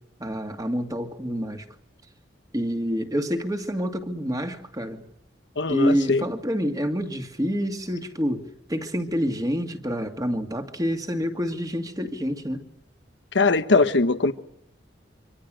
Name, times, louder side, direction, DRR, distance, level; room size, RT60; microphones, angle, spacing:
voice 1, 0.2-1.7 2.5-5.0 5.7-12.6, equal, 20° right, 2.4 m, -27 dB
voice 2, 5.6-6.2 13.3-14.3, left 3 dB, 75° left, 1.2 m, -21 dB
26.0 x 25.5 x 6.4 m
head